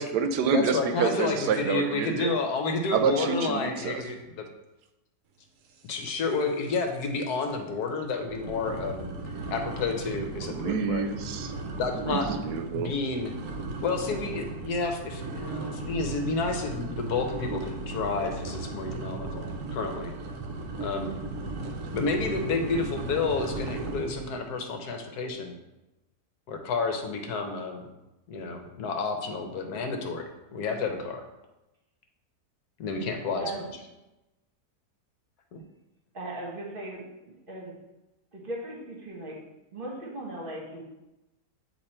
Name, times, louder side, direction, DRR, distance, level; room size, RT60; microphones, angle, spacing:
voice 1, 0.0-2.3 2.9-4.0 10.4-12.9, right 6 dB, 85° right, 7 dB, 1.2 m, -28 dB
voice 2, 0.5-4.5 5.9-9.1 9.5-11.0 11.8-12.3 12.7-13.3 13.8-20.1 20.8-21.2 21.9-25.5 26.5-27.9 28.3-31.2 32.8-33.5 35.5-35.6, left 4 dB, 70° left, 4 dB, 1.3 m, -30 dB
sound 1, 6.0-6.4 6.7-7.1 7.5-7.6 8.2-24.3, right 3 dB, 60° right, 0.9 m, -36 dB
voice 3, 33.4-33.7 36.1-37.7 38.3-39.4 39.7-40.8, right 1 dB, 35° right, -2 dB, 1.3 m, -38 dB
8.2 x 2.9 x 4.3 m, 0.97 s
omnidirectional pair, 1.7 m